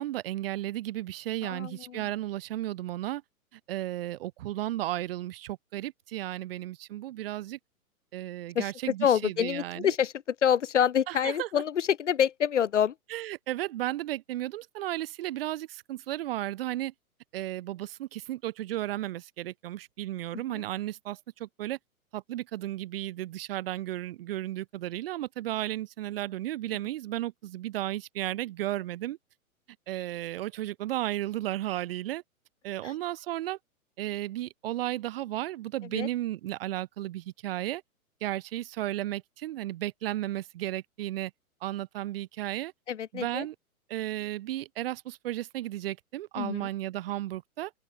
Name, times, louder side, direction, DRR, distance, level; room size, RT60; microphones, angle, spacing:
voice 1, 0.0-3.2 3.7-7.6 8.1-9.9 11.1-11.5 13.1-16.9 17.3-21.8 22.1-29.2 29.9-32.2 32.6-33.6 34.0-37.8 38.2-41.3 41.6-42.7 43.1-43.6 43.9-47.7, right 14 dB, 40° right, 3.7 m, -34 dB
voice 2, 1.4-2.0 8.5-8.7 9.0-12.9 20.3-20.6 32.8-32.9 35.9-36.1 42.9-43.5 46.4-46.7, left 9 dB, 55° left, 1.6 m, -27 dB
open air
figure-of-eight pair, 115°, 43 cm